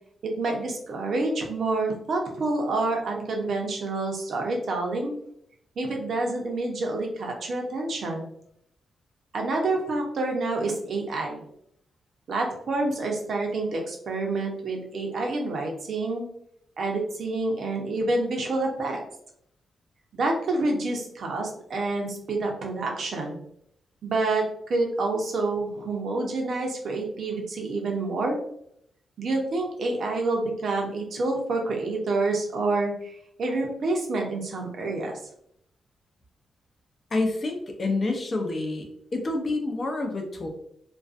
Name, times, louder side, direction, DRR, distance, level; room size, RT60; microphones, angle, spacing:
voice 1, 0.2-5.1 5.8-8.3 9.3-11.4 12.3-16.3 16.8-19.0 20.1-23.4 24.0-24.4 24.7-28.4 29.2-35.2, right 2 dB, 65° right, 1 dB, 0.6 m, -28 dB
voice 2, 37.1-40.5, left 2 dB, 35° left, 3 dB, 0.6 m, -28 dB
2.5 x 2.2 x 2.4 m, 0.70 s
cardioid pair, 105°, 0 cm